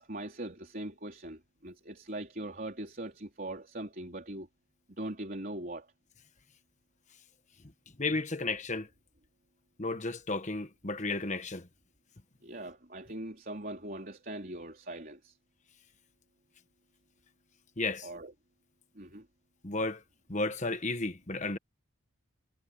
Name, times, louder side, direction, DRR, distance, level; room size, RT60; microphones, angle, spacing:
voice 1, 0.0-4.5 5.0-5.9 12.4-15.4 18.0-18.3 19.0-19.3, right 1 dB, 40° right, 4.0 m, -41 dB
voice 2, 8.0-8.9 9.8-11.7 17.8-18.1 19.6-20.0 20.3-21.6, left 3 dB, 35° left, 1.4 m, -33 dB
head